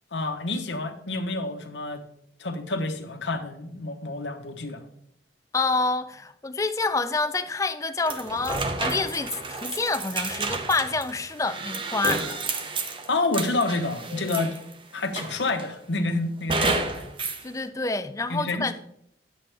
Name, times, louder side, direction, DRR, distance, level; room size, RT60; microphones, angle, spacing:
voice 1, 0.1-2.0 2.4-4.8 13.1-14.6 14.9-17.1 18.3-18.7, left 2 dB, 80° left, 1.1 m, -28 dB
voice 2, 5.5-12.4 17.4-18.7, left 3 dB, 15° left, 0.4 m, -27 dB
sound 1, 8.1-14.7 15.2-15.7 16.5-17.4, right 3 dB, 30° right, 0.7 m, -30 dB
10.5 x 7.5 x 3.4 m
head